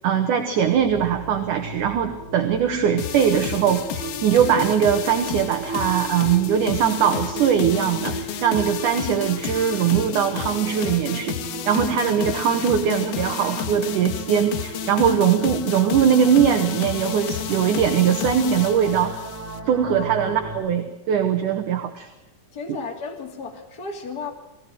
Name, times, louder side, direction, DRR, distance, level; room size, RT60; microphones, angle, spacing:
voice 1, 0.0-11.4 11.7-19.1 19.7-22.1, right 8 dB, 60° right, 6 dB, 2.4 m, -21 dB
sound 1, 0.6-20.6, right 3 dB, 30° right, 5.1 m, -36 dB
sound 2, 3.0-19.6, left 10 dB, 65° left, 2.4 m, -31 dB
voice 2, 22.5-24.3, left 4 dB, 25° left, 1 dB, 2.8 m, -34 dB
21.0 x 17.0 x 7.8 m, 0.98 s
omnidirectional pair, 4.7 m